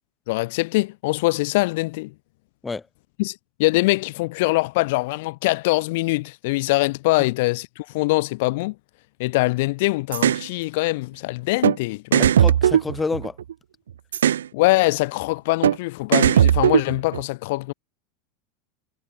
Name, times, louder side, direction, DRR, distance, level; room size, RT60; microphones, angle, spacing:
voice 1, 0.3-2.1 3.2-8.7 9.2-12.3 14.5-17.7, left 22 dB, 60° left, 3.4 m, -23 dB
sound 1, 10.1-10.4 11.6-11.8 12.1-13.5 14.1-14.5 15.6-15.8 16.1-17.2, right 10 dB, 75° right, 4.9 m, -18 dB
voice 2, 12.2-13.4, left 4 dB, 15° left, 5.2 m, -28 dB
hypercardioid pair, 85°, 0 cm